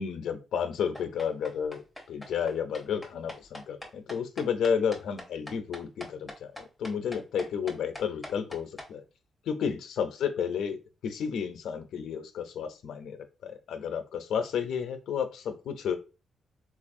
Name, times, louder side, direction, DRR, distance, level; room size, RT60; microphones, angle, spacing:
voice 1, 0.0-1.8 2.1-9.0 9.5-13.2 13.4-16.0, left 7 dB, 75° left, 8 dB, 0.5 m, -32 dB
sound 1, 0.9-8.9, left 1 dB, ahead, 0.8 m, -43 dB
3.9 x 2.4 x 2.6 m, 0.30 s
cardioid pair, 140°, 0 cm